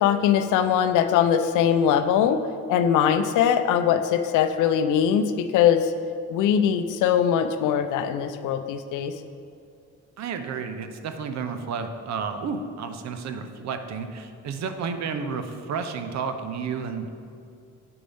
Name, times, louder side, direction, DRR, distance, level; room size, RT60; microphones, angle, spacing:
voice 1, 0.0-2.4 2.7-5.9 6.3-9.1, left 8 dB, 85° left, 9 dB, 0.5 m, -21 dB
voice 2, 10.2-17.1, right 5 dB, 65° right, 8 dB, 0.7 m, -31 dB
8.7 x 5.2 x 3.4 m, 2.4 s
cardioid pair, 90°, 30 cm